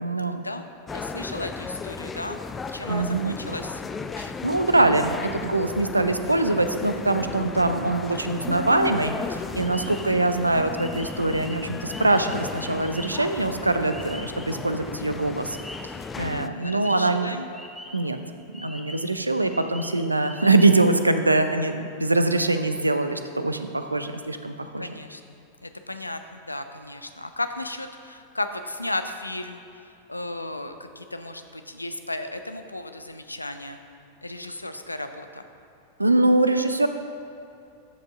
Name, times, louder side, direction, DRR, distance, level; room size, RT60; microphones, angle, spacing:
voice 1, 0.0-0.4 2.9-3.4 4.2-15.6 16.2-17.3 17.9-18.2 18.6-24.9 36.0-36.9, right 2 dB, 85° right, 8 dB, 0.4 m, -23 dB
voice 2, 0.9-2.4 2.7-3.8 16.5-17.5 23.8-23.9 24.8-29.6 30.1-33.8 34.2-35.4, left 2 dB, 85° left, 8 dB, 0.4 m, -34 dB
sound 1, 0.9-16.5, left 5 dB, 15° left, 0.3 m, -35 dB
sound 2, 9.6-14.6 14.9-16.0 16.6-18.2 18.5-20.7, equal, ahead, 0.8 m, -43 dB
13.5 x 5.2 x 3.6 m, 2.5 s
figure-of-eight pair, 90°, 0 cm